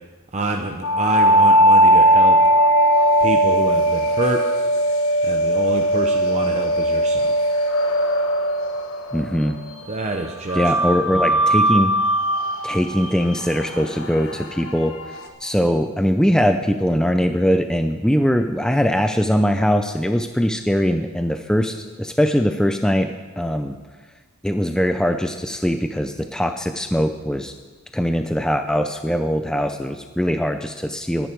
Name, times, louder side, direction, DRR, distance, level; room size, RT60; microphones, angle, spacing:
voice 1, 0.3-2.4 3.2-4.4 5.2-7.5 9.9-10.7 11.1-11.4, right 2 dB, 30° right, 3 dB, 0.8 m, -27 dB
sound 1, 0.8-9.6 10.5-15.3, right 1 dB, 65° left, 1.3 m, -19 dB
voice 2, 9.1-9.6 10.5-11.9 12.6-14.9 15.4-23.1 23.4-23.8 24.4-27.5 27.9-31.3, equal, 5° left, 6 dB, 0.5 m, -21 dB
19.5 x 10.5 x 4.6 m, 1.3 s
head